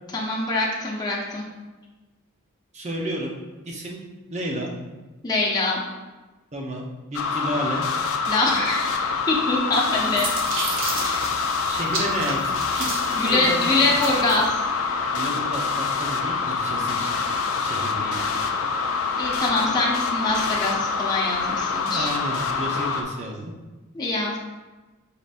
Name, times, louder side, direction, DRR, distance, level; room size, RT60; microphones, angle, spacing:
voice 1, 0.1-1.4 5.2-5.8 8.3-10.3 11.0-11.3 13.2-14.5 18.1-18.3 19.2-22.1 23.9-24.4, left 2 dB, 20° left, -4 dB, 0.7 m, -24 dB
voice 2, 2.7-3.3 3.7-4.0 4.3-4.7 6.5-6.9 7.1-7.8 11.6-12.9 13.2-13.8 15.1-17.3 17.6-18.3 21.9-23.5, right 1 dB, 35° right, -1 dB, 0.7 m, -31 dB
sound 1, 7.1-23.0, left 4 dB, 80° left, 0.5 m, -26 dB
sound 2, 9.7-14.5, right 3 dB, 65° right, 0.7 m, -33 dB
5.3 x 3.8 x 2.5 m, 1.2 s
head